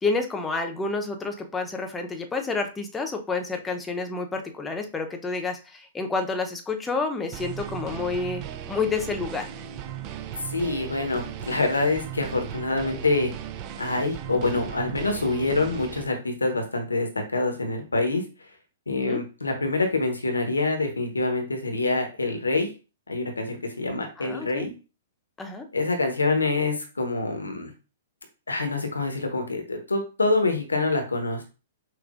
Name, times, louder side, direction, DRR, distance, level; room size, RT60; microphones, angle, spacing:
voice 1, 0.0-9.5 19.0-19.2 24.2-24.7 25.4-25.7, left 4 dB, 10° left, 4 dB, 0.8 m, -29 dB
sound 1, 7.3-16.0, right 10 dB, 35° right, 0.5 m, -37 dB
voice 2, 10.4-13.3 13.8-18.5 18.9-22.7 23.1-24.7 25.7-27.7 28.5-31.4, left 3 dB, 90° left, 4 dB, 1.1 m, -26 dB
5.9 x 2.6 x 2.5 m, 0.33 s
hypercardioid pair, 115°, 0 cm